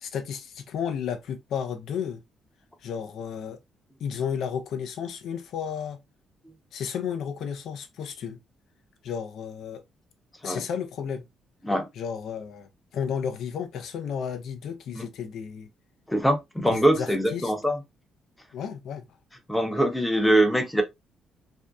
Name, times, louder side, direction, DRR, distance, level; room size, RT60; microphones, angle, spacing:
voice 1, 0.0-2.2 2.8-3.6 4.0-6.0 6.7-8.4 9.0-9.8 10.4-11.2 11.9-15.7 16.7-17.5 18.5-19.1, left 7 dB, 75° left, 0.5 m, -33 dB
voice 2, 16.1-17.8 19.5-20.8, right 1 dB, 5° left, 0.7 m, -23 dB
2.6 x 2.1 x 2.2 m
cardioid pair, 90°, 0 cm